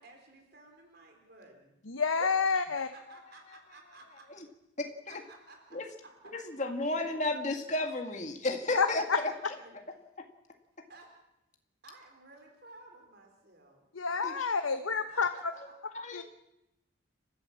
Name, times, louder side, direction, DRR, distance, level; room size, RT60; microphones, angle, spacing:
voice 1, 0.0-1.8 2.8-4.3 5.1-6.3 8.8-9.7 10.9-11.1 11.8-13.8 15.1-15.6, right 2 dB, 50° right, 4.2 m, -55 dB
voice 2, 1.9-2.9 8.7-9.2 13.9-15.3 16.1-16.2, left 5 dB, 80° left, 1.1 m, -29 dB
voice 3, 4.8-5.2 5.7-5.9 6.3-9.3 14.2-14.3 15.9-16.2, left 2 dB, 35° left, 2.1 m, -33 dB
30.0 x 13.5 x 7.5 m
head